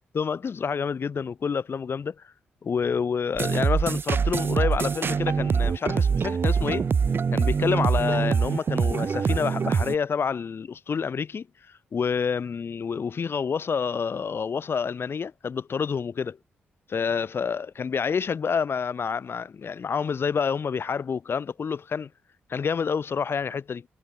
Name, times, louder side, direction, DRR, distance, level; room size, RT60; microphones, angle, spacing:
voice 1, 0.1-2.1 2.6-6.9 7.3-11.5 11.9-16.4 16.9-22.1 22.5-23.9, left 6 dB, 55° left, 5.7 m, -28 dB
sound 1, 3.4-10.0, right 6 dB, 50° right, 1.0 m, -24 dB
supercardioid pair, 55°, 5 cm